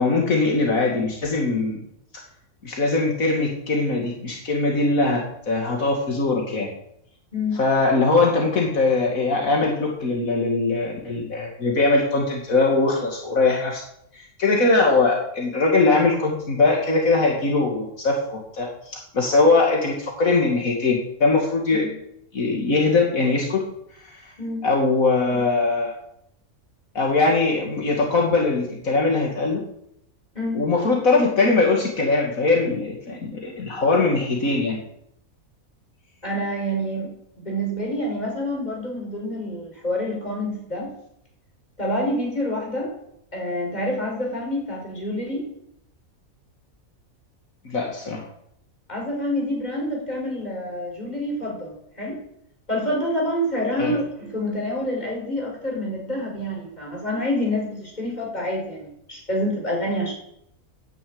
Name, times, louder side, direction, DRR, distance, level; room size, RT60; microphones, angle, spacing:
voice 1, 0.0-1.8 2.6-6.7 7.6-13.9 14.1-21.9 22.3-23.6 24.0-24.2 24.6-26.0 26.9-29.6 30.5-34.8 47.6-48.2 53.8-54.0, left 3 dB, 75° left, 0 dB, 2.5 m, -21 dB
voice 2, 36.2-37.1 37.4-40.9 41.8-42.9 43.3-45.4 48.9-52.2 52.7-60.1, equal, 30° left, -1 dB, 5.0 m, -27 dB
10.0 x 9.8 x 8.7 m, 0.75 s
omnidirectional pair, 1.5 m